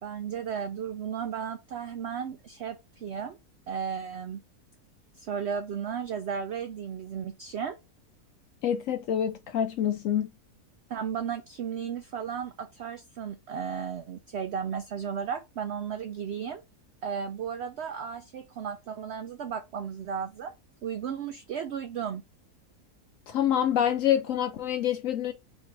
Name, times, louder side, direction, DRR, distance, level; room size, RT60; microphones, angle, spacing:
voice 1, 0.0-3.4 3.7-4.4 5.1-7.8 10.9-16.6 17.0-20.5 20.8-22.2, right 7 dB, 70° right, 0.6 m, -34 dB
voice 2, 8.6-10.3 23.3-25.3, left 10 dB, 65° left, 0.9 m, -26 dB
3.8 x 2.6 x 4.3 m
omnidirectional pair, 1.6 m